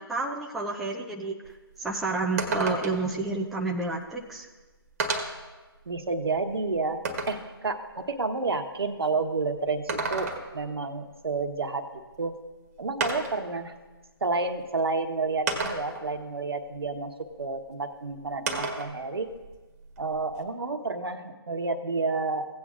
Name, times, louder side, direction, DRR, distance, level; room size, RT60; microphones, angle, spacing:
voice 1, 0.1-4.5, right 3 dB, ahead, -2 dB, 0.4 m, -30 dB
sound 1, 1.4-1.5 1.9-2.0 2.4-3.1 4.2-4.3 5.0-5.5 6.0-7.5 9.7-10.7 12.1-12.2 13.0-13.5 14.5-14.6 15.5-16.1 18.5-18.9 19.3-20.4, right 3 dB, 35° right, 1.5 m, -31 dB
voice 2, 5.9-7.0 7.3-11.9 12.2-12.4 12.8-13.7 14.2-17.1 17.4-19.3 20.0-22.5, right 3 dB, 70° right, 5 dB, 1.1 m, -30 dB
17.0 x 8.6 x 2.5 m, 1.2 s
figure-of-eight pair, 150°, 13 cm